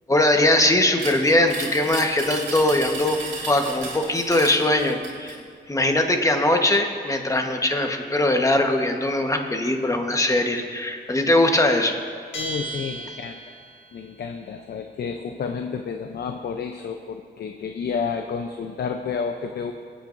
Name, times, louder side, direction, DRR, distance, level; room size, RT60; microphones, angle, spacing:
voice 1, 0.1-5.4 5.7-12.0, left 1 dB, 15° left, 4 dB, 1.2 m, -21 dB
sound 1, 1.0-5.4, right 3 dB, 80° right, 2.9 m, -34 dB
Bell, 12.3-13.9, right 2 dB, 80° left, 1.7 m, -34 dB
voice 2, 12.3-13.5 13.9-19.7, left 6 dB, 60° left, 5 dB, 0.6 m, -30 dB
24.5 x 8.8 x 2.6 m, 2.1 s
cardioid pair, 80°, 19 cm